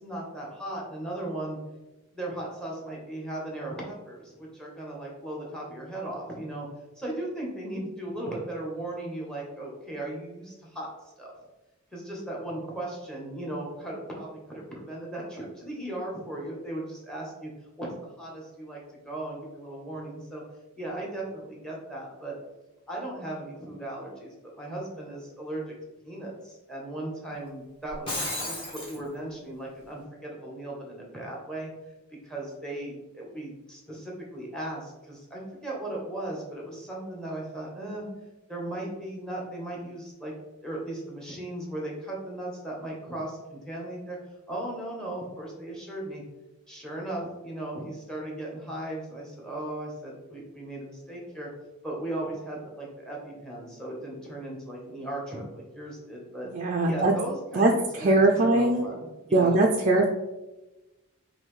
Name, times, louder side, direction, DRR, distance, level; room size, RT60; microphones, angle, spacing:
voice 1, 0.0-1.6 2.1-6.7 7.0-10.9 11.2-11.3 11.9-17.5 17.8-17.9 18.2-20.4 20.8-22.4 22.9-25.6 26.0-31.7 32.1-38.1 38.5-40.3 40.6-44.2 44.5-46.2 46.7-51.5 51.8-56.5 56.9-59.6, right 1 dB, 5° left, -3 dB, 1.0 m, -37 dB
Shatter, 27.9-29.0, left 1 dB, 25° left, 1.4 m, -32 dB
voice 2, 56.5-57.1 57.5-58.8 59.3-60.1, right 2 dB, 35° right, 0 dB, 0.4 m, -21 dB
5.6 x 2.7 x 3.2 m, 1.0 s
head